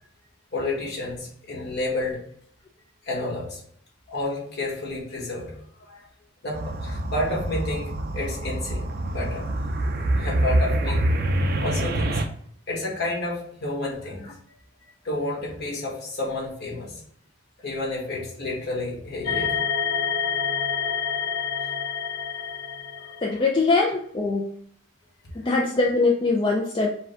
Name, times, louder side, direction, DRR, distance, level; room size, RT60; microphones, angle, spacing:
voice 1, 0.5-2.2 3.0-3.6 4.1-5.5 5.9-6.1 6.4-9.5 10.1-11.0 11.6-12.2 12.7-14.3 15.0-17.0 17.6-19.6 23.0-23.4, left 2 dB, 50° left, -3 dB, 1.5 m, -30 dB
sound 1, 6.5-12.2, right 1 dB, 45° right, 0.4 m, -25 dB
sound 2, 19.2-23.5, left 6 dB, 70° left, 0.6 m, -28 dB
voice 2, 23.2-24.4 25.3-26.9, left 3 dB, 25° left, -1 dB, 0.4 m, -22 dB
4.9 x 2.2 x 3.6 m, 0.64 s
head